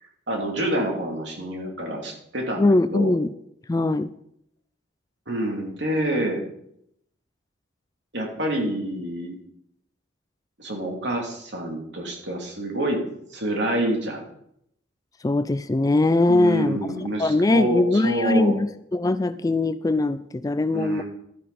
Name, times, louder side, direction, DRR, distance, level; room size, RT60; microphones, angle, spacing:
voice 1, 0.3-3.1 5.3-6.4 8.1-9.4 10.6-13.0 13.3-14.2 16.3-18.5 20.7-21.0, right 1 dB, 65° right, 0 dB, 2.8 m, -27 dB
voice 2, 2.6-3.3 3.7-4.1 15.2-16.8 17.2-21.0, left 2 dB, 20° left, 13 dB, 0.3 m, -21 dB
12.0 x 10.0 x 4.2 m, 0.73 s
head